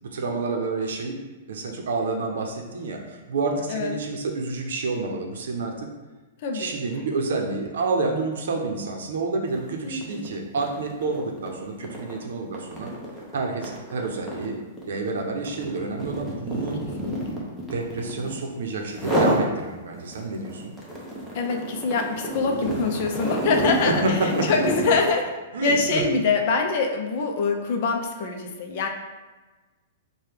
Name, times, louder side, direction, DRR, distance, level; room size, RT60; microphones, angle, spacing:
voice 1, 0.0-1.2 1.5-5.9 6.5-12.9 13.3-14.6 14.9-16.8 17.7-20.7 23.8-24.5 25.5-26.0, right 3 dB, 80° right, 2 dB, 0.7 m, -29 dB
voice 2, 6.4-6.8 9.8-10.3 17.1-17.4 21.3-23.9 24.2-25.3 25.6-28.9, left 4 dB, 50° left, 3 dB, 0.5 m, -24 dB
sound 1, 9.5-9.7 10.0-18.5 18.9-19.5 19.9-25.1, equal, ahead, 0.7 m, -29 dB
4.7 x 2.2 x 3.4 m, 1.2 s
hypercardioid pair, 160°, 0 cm